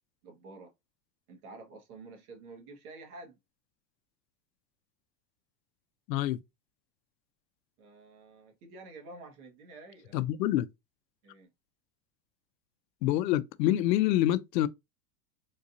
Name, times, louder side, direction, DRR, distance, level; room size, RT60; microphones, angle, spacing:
voice 1, 0.2-0.7 1.3-3.4 7.8-10.2 11.2-11.5, right 3 dB, 65° right, 1.6 m, -49 dB
voice 2, 6.1-6.4 10.1-10.7 13.0-14.7, left 14 dB, 80° left, 0.6 m, -26 dB
3.9 x 2.7 x 2.4 m
supercardioid pair, 145°, 49 cm